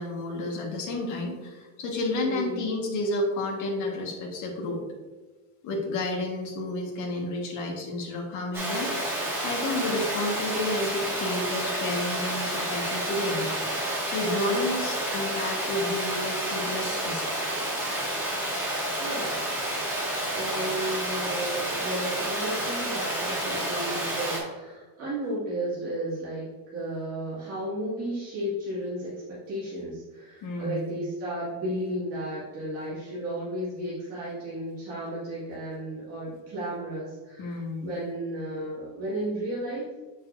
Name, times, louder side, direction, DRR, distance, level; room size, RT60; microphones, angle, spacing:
voice 1, 0.0-4.8 5.6-8.9 9.4-13.5 14.0-17.2 30.4-30.9 37.4-37.9, left 2 dB, 45° left, 0 dB, 1.6 m, -31 dB
voice 2, 2.2-2.7 19.0-19.4 20.2-39.9, right 1 dB, 35° right, -9 dB, 2.2 m, -33 dB
Water, 8.5-24.4, right 1 dB, 5° right, 1.9 m, -30 dB
7.3 x 6.3 x 2.6 m, 1.3 s
cardioid pair, 165°, 41 cm